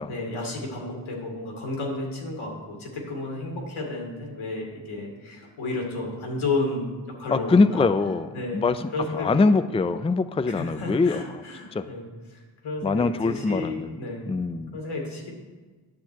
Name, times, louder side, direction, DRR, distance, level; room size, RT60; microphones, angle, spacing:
voice 1, 0.0-6.9 7.2-7.9 8.3-8.7 8.9-9.5 10.5-14.4 14.7-15.4, left 2 dB, 85° left, 1 dB, 2.3 m, -32 dB
voice 2, 7.3-11.2 11.7-11.8 12.8-14.0 14.3-14.7, left 3 dB, 15° left, 11 dB, 0.4 m, -23 dB
9.8 x 7.0 x 4.5 m, 1.3 s
cardioid pair, 50°, 46 cm